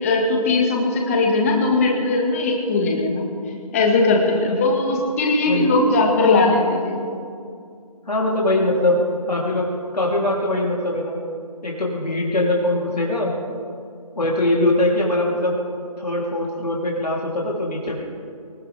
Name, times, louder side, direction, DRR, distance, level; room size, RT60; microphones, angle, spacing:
voice 1, 0.0-3.3 3.7-7.0, left 3 dB, 20° left, 0 dB, 1.9 m, -19 dB
voice 2, 4.3-4.6 5.5-5.8 8.1-11.2 11.6-13.3 14.2-15.5 16.0-18.0, left 1 dB, 85° left, -3 dB, 3.6 m, -22 dB
19.5 x 19.5 x 3.6 m, 2.3 s
figure-of-eight pair, 160°, 20 cm